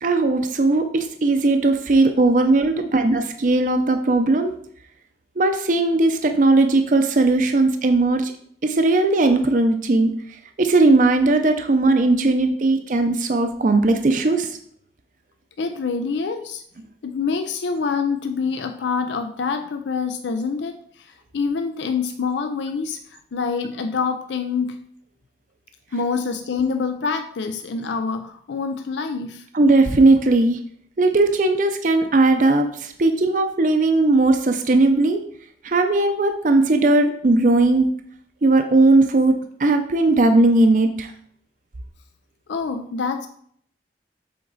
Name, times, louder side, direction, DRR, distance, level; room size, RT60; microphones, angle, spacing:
voice 1, 0.0-4.6 5.4-8.3 8.6-10.1 10.6-14.6 29.5-30.6 31.0-35.2 35.6-37.9 38.4-41.1, right 2 dB, 45° right, 6 dB, 0.5 m, -18 dB
voice 2, 15.6-16.6 17.0-24.8 25.9-29.5 42.5-43.3, left 5 dB, 85° left, 7 dB, 0.5 m, -26 dB
7.7 x 3.9 x 4.0 m, 0.63 s
head